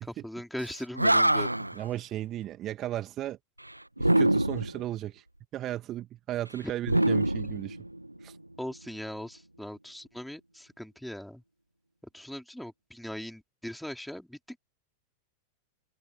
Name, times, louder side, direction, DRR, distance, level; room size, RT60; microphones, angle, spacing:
voice 1, 0.0-1.7 6.6-6.7 8.6-11.4 12.1-14.6, equal, ahead, 4.1 m, -40 dB
Animal, 0.7-0.8 1.0-1.8 4.0-4.8 6.8-8.2, right 1 dB, 85° right, 1.6 m, -24 dB
voice 2, 1.7-3.4 4.0-5.2 5.5-7.8 8.2-8.4, right 13 dB, 30° right, 2.2 m, -35 dB
open air
figure-of-eight pair, 90°, 0 cm